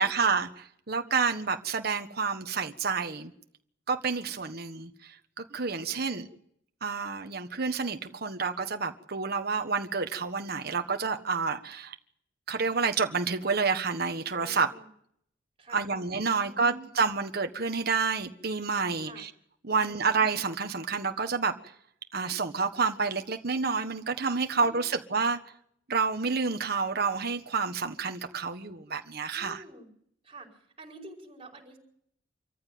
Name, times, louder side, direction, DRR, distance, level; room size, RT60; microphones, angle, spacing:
voice 1, 0.0-3.3 3.9-6.3 6.8-11.9 12.5-14.7 15.7-19.3 19.6-21.6 22.1-25.4 25.9-29.6, right 5 dB, 55° right, 1.4 m, -29 dB
voice 2, 5.8-6.3 14.3-14.9 15.6-15.9 16.2-16.9 19.0-19.3 19.7-20.1 24.3-25.0 29.3-29.9 30.2-31.8, right 1 dB, 30° right, 5.2 m, -50 dB
26.0 x 14.5 x 9.5 m
head